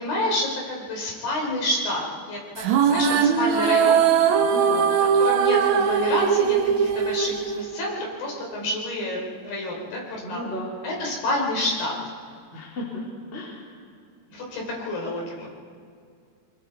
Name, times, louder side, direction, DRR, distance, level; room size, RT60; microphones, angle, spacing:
voice 1, 0.0-2.4 2.7-4.0 5.2-10.0 10.3-10.5 10.8-11.9 14.3-15.5, left 1 dB, 60° left, -2 dB, 6.1 m, -28 dB
sound 1, 2.6-8.1, right 7 dB, 75° right, 1.7 m, -20 dB
voice 2, 4.4-4.9 10.2-10.7 12.5-13.0 13.3-13.6, left 1 dB, 15° left, -4 dB, 3.5 m, -34 dB
25.5 x 21.5 x 4.7 m, 2.3 s
omnidirectional pair, 4.7 m